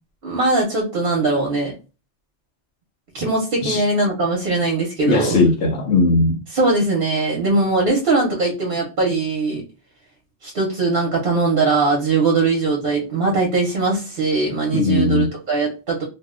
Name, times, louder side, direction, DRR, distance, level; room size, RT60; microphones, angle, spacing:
voice 1, 0.2-1.7 3.1-5.4 6.5-9.6 10.4-16.0, right 3 dB, 55° right, 0.8 m, -20 dB
voice 2, 5.0-6.4 14.7-15.3, left 3 dB, 80° left, 0.9 m, -18 dB
2.6 x 2.1 x 3.5 m
omnidirectional pair, 1.2 m